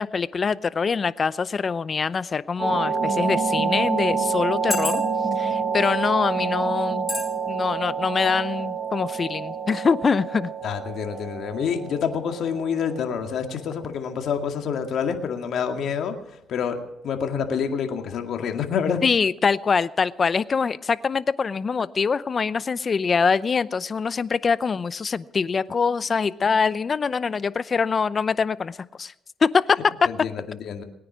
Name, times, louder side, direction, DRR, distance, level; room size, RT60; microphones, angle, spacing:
voice 1, 0.0-5.0 5.4-7.1 7.5-10.5 19.0-29.1 29.4-29.9, left 5 dB, 40° left, 17 dB, 0.6 m, -24 dB
sound 1, 2.6-2.7 3.5-3.6 4.5-5.3 6.0-6.2 7.1-7.3 7.7-7.9, left 3 dB, 25° left, 4.6 m, -30 dB
sound 2, 2.6-14.1, right 5 dB, 35° right, 4.0 m, -28 dB
voice 2, 10.6-16.8 17.0-19.0 30.1-30.8, left 7 dB, 70° left, 4 dB, 2.1 m, -27 dB
21.0 x 9.7 x 6.2 m, 0.86 s
cardioid pair, 90°, 0 cm